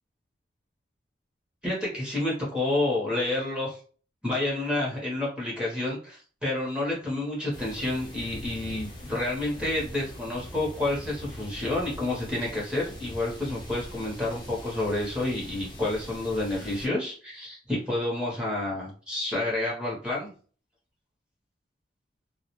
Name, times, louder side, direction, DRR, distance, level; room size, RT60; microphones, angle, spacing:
voice 1, 1.6-3.8 4.2-20.3, left 2 dB, 5° right, -5 dB, 0.8 m, -29 dB
sound 1, 7.5-16.9, left 1 dB, 25° left, 0.6 m, -42 dB
2.3 x 2.1 x 2.9 m, 0.41 s
head